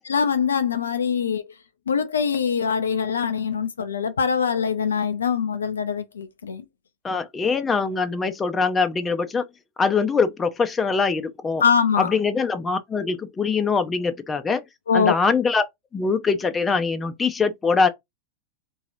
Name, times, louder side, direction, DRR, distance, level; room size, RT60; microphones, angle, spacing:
voice 1, 0.1-1.4 1.9-6.6 11.6-12.1 14.9-15.1, left 6 dB, 70° left, 0.5 m, -23 dB
voice 2, 7.0-9.4 9.8-11.6 12.0-14.6 14.9-15.6 15.9-17.9, left 4 dB, 15° left, 0.6 m, -23 dB
3.8 x 2.9 x 2.6 m
figure-of-eight pair, 90°, 0 cm